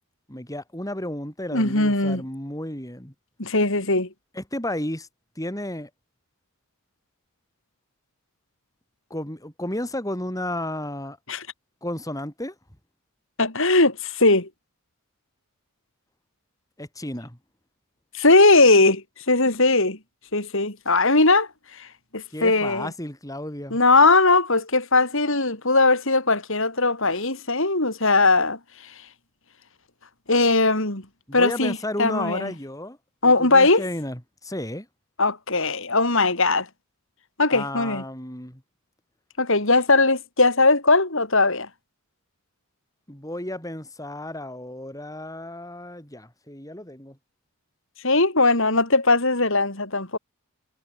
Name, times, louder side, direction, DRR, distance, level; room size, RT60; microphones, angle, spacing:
voice 1, 0.3-3.1 4.3-5.1 5.4-5.9 9.1-11.2 11.8-12.6 16.8-17.4 22.3-23.8 31.3-33.0 33.2-34.9 37.5-38.6 43.1-47.2, left 1 dB, 15° left, 5.5 m, -32 dB
voice 2, 1.5-2.2 3.4-4.1 11.3-11.5 13.4-14.5 18.1-20.0 20.3-21.9 22.1-22.9 23.7-28.9 30.3-31.0 31.3-32.5 33.2-33.9 35.2-36.7 37.4-38.0 39.4-41.7 48.0-50.2, left 3 dB, 60° left, 4.9 m, -19 dB
head